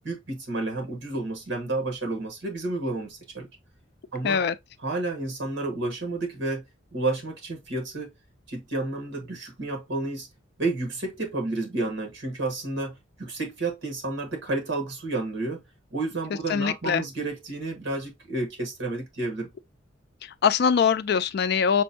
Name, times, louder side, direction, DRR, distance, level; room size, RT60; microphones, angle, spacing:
voice 1, 0.0-3.5 4.1-4.4 4.8-6.6 6.9-8.1 8.5-10.3 10.6-15.6 15.9-19.5, right 2 dB, 70° right, 1.4 m, -31 dB
voice 2, 4.2-4.5 16.5-17.0 20.2-21.8, left 6 dB, 50° left, 0.3 m, -23 dB
6.0 x 2.2 x 2.6 m
head